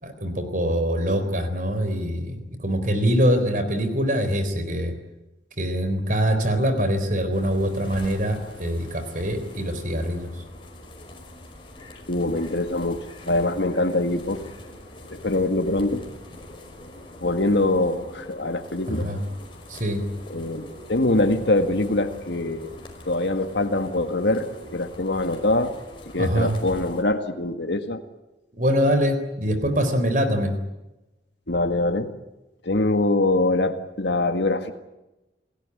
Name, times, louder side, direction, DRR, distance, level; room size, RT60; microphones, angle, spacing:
voice 1, 0.0-4.9 5.6-10.3 18.9-19.2 19.7-20.0 26.2-26.5 28.5-30.5, equal, 45° right, 8 dB, 4.0 m, -24 dB
sound 1, 7.3-27.0, left 1 dB, 30° left, 5.3 m, -43 dB
voice 2, 12.1-14.5 15.1-16.1 17.2-19.1 20.3-20.6 20.9-22.8 23.1-25.8 26.1-28.0 31.5-32.1 32.6-34.7, left 2 dB, 70° left, 6 dB, 1.8 m, -23 dB
29.0 x 16.5 x 9.8 m, 1.0 s
head